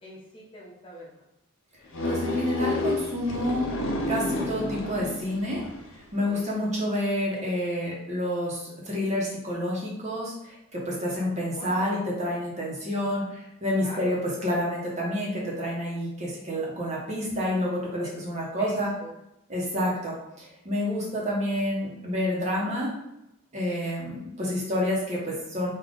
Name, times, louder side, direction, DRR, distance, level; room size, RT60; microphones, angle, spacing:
voice 1, 0.0-1.3 6.3-6.6 11.1-12.1 13.8-14.2 18.6-19.1, equal, 25° left, -5 dB, 0.9 m, -43 dB
sound 1, 1.9-6.0, left 1 dB, 70° left, 0.7 m, -30 dB
voice 2, 2.0-3.7 4.1-5.6 6.1-18.9 19.5-22.9 23.5-25.7, left 1 dB, 35° right, -4 dB, 0.9 m, -29 dB
3.5 x 2.4 x 3.8 m, 0.86 s
head